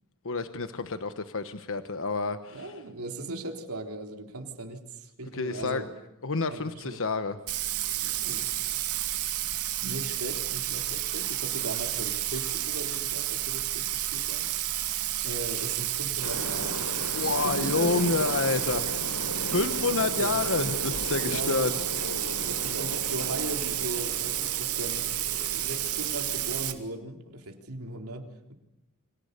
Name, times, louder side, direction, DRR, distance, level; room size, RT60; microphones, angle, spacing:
voice 1, 0.2-2.8 5.3-5.8 6.2-7.4 17.1-21.7 22.2-22.5, left 4 dB, 60° left, 10 dB, 1.2 m, -29 dB
voice 2, 2.5-5.9 6.5-7.0 8.0-8.5 9.8-14.8 15.2-16.9 17.4-18.3 19.5-20.3 21.2-21.8 22.4-28.5, right 1 dB, 70° right, 4 dB, 3.8 m, -38 dB
Bathtub (filling or washing), 7.5-26.7, right 13 dB, 85° right, 2.6 m, -31 dB
sound 1, 16.2-26.7, left 2 dB, 90° left, 3.8 m, -38 dB
30.0 x 25.5 x 6.8 m, 0.91 s
head